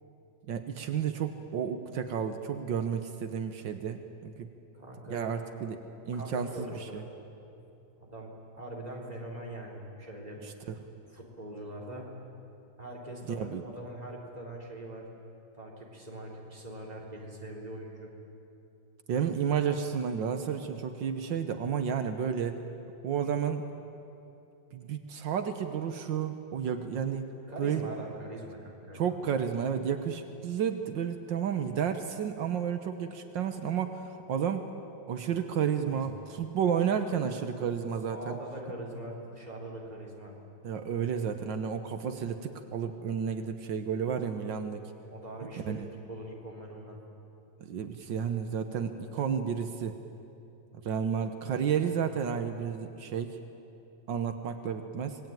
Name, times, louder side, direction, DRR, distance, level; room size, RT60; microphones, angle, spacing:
voice 1, 0.5-4.5 5.1-5.8 6.1-7.0 10.4-10.8 13.3-13.6 19.1-22.6 23.0-23.6 24.7-27.3 27.6-27.8 28.9-34.7 35.1-38.4 40.6-44.8 45.7-45.9 47.7-50.0 50.8-53.4 54.1-55.2, right 7 dB, 80° right, 7 dB, 1.8 m, -31 dB
voice 2, 4.7-5.4 6.1-7.1 8.0-10.4 11.1-12.2 12.8-15.1 15.5-18.1 27.5-29.2 35.8-36.2 38.1-40.4 45.1-45.8 46.1-47.0, right 1 dB, 20° right, -3 dB, 4.1 m, -42 dB
26.5 x 20.5 x 9.1 m, 2.8 s
omnidirectional pair, 2.0 m